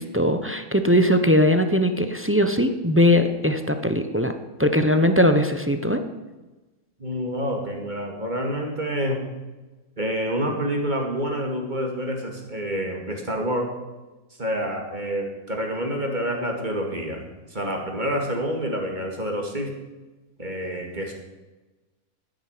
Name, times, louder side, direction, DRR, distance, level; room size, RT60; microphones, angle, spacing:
voice 1, 0.0-4.3 4.6-6.0, left 1 dB, 10° right, 8 dB, 0.6 m, -20 dB
voice 2, 7.0-9.3 10.0-13.7 14.4-17.2 17.5-19.7 20.4-21.1, equal, 30° right, 2 dB, 2.4 m, -28 dB
10.5 x 10.0 x 9.4 m, 1.2 s
omnidirectional pair, 1.6 m